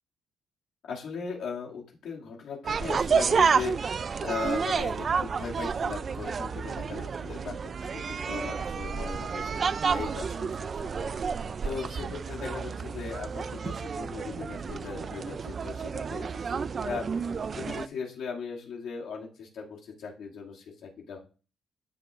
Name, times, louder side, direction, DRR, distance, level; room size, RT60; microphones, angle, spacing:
voice 1, 0.9-16.4 16.8-21.2, left 5 dB, 75° left, -2 dB, 2.3 m, -38 dB
sound 1, 2.6-17.9, right 6 dB, 45° right, 0.4 m, -30 dB
12.0 x 6.6 x 2.5 m, 0.37 s
cardioid pair, 90°, 0 cm